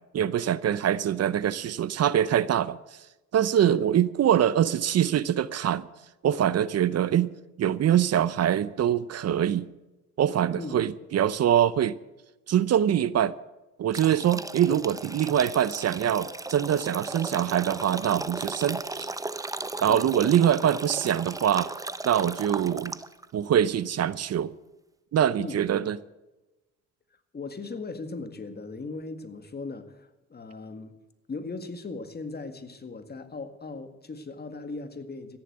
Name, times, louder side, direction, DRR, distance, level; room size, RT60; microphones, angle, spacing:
voice 1, 0.1-2.8 3.3-5.9 6.2-7.3 7.6-9.7 10.2-11.9 12.5-13.3 13.8-19.1 19.8-21.7 22.0-23.0 23.3-24.5 25.1-26.0, right 10 dB, 55° right, 0.7 m, -24 dB
sound 1, 13.9-23.3, right 2 dB, 10° right, 0.8 m, -36 dB
voice 2, 25.4-25.9 27.3-30.9 31.3-35.4, left 3 dB, 35° left, 1.9 m, -38 dB
14.5 x 11.0 x 7.9 m
cardioid pair, 90°, 30 cm